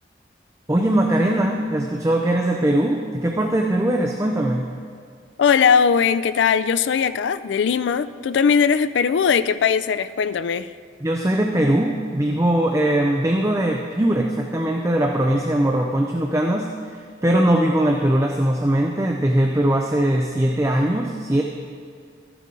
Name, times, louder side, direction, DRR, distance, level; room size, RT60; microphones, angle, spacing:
voice 1, 0.7-4.7 11.0-21.4, right 1 dB, 15° right, 1 dB, 0.5 m, -20 dB
voice 2, 5.4-10.7, left 6 dB, 80° left, 14 dB, 0.4 m, -19 dB
13.5 x 9.2 x 3.8 m, 2.2 s
head